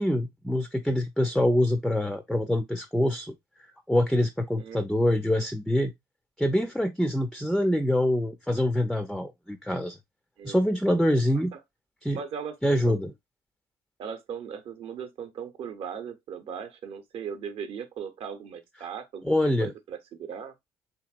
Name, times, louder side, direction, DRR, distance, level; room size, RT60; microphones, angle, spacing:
voice 1, 0.0-5.9 6.4-10.0 10.4-11.5 12.0-12.2 12.6-13.1 19.2-19.7, left 1 dB, ahead, 0.4 m, -25 dB
voice 2, 12.1-13.0 14.0-20.5, right 7 dB, 60° right, 0.7 m, -38 dB
2.9 x 2.7 x 2.3 m
supercardioid pair, 70°, 11 cm